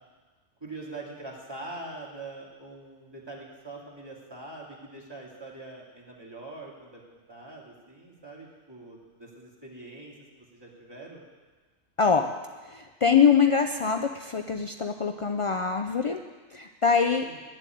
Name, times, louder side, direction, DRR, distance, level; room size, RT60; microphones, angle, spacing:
voice 1, 0.6-11.2 17.2-17.4, right 2 dB, 20° right, -4 dB, 2.5 m, -43 dB
voice 2, 12.6-16.2 16.5-17.3, left 6 dB, 60° left, 5 dB, 0.3 m, -24 dB
11.0 x 7.4 x 9.2 m, 1.3 s
omnidirectional pair, 1.3 m